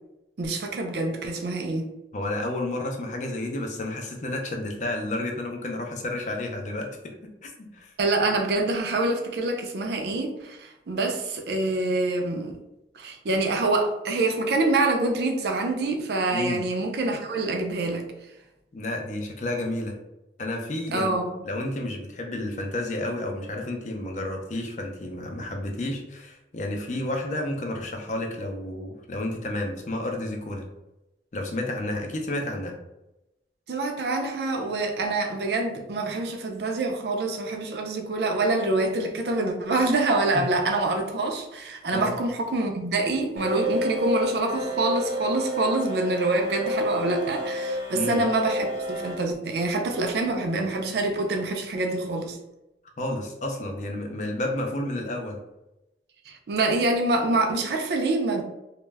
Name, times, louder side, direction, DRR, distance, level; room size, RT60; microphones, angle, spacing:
voice 1, 0.4-1.9 8.0-12.6 12.9-18.1 20.9-21.4 33.7-52.4 56.3-58.4, right 2 dB, 65° right, 4 dB, 0.4 m, -26 dB
voice 2, 2.1-7.1 7.4-7.9 16.3-16.6 18.7-19.9 20.4-21.1 21.4-30.7 31.3-32.7 40.3-40.4 41.9-42.1 47.9-48.2 53.0-55.4, left 1 dB, 40° left, 2 dB, 0.4 m, -31 dB
sound 1, 43.4-49.1, equal, 80° right, 0.8 m, -29 dB
2.2 x 2.0 x 3.2 m, 0.93 s
head